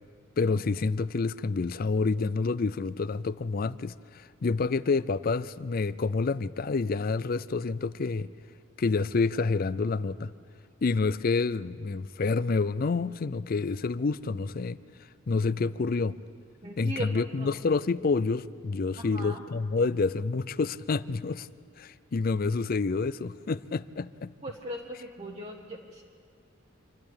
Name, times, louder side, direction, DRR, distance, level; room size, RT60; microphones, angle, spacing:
voice 1, 0.4-8.3 8.8-10.3 10.8-14.8 15.3-16.2 16.8-21.5 21.8-24.3, left 4 dB, 45° left, 17 dB, 0.4 m, -28 dB
voice 2, 16.6-17.5 19.0-19.4 24.4-26.0, equal, 30° right, -1 dB, 1.2 m, -38 dB
27.5 x 11.5 x 8.8 m, 2.3 s
head